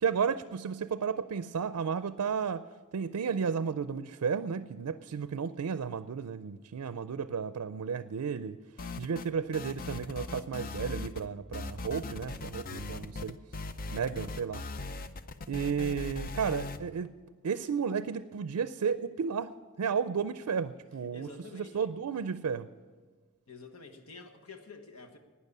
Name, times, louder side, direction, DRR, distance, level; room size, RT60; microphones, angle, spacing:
voice 1, 0.0-2.6 2.9-8.6 9.0-13.4 13.9-14.6 15.5-17.1 17.4-19.5 19.8-21.3 21.5-22.7, right 6 dB, 85° right, 0.4 m, -33 dB
sound 1, 8.8-9.3 9.5-11.3 11.5-16.8, left 3 dB, 40° left, 0.5 m, -39 dB
voice 2, 21.1-21.9 23.5-25.2, left 3 dB, 70° left, 1.3 m, -49 dB
12.0 x 9.7 x 8.4 m
head